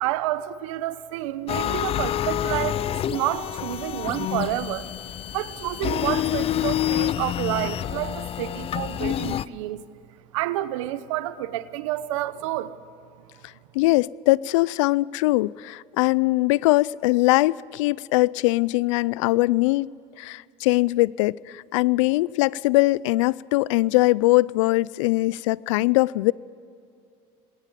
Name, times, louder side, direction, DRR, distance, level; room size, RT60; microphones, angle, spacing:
voice 1, 0.0-4.9 5.3-9.8 10.3-12.8, right 14 dB, 90° right, 0.9 m, -29 dB
sound 1, 1.5-9.5, left 11 dB, 40° left, 0.5 m, -27 dB
voice 2, 13.7-19.9 20.2-26.3, left 20 dB, 90° left, 0.4 m, -21 dB
20.5 x 18.0 x 7.5 m
supercardioid pair, 100°, 16 cm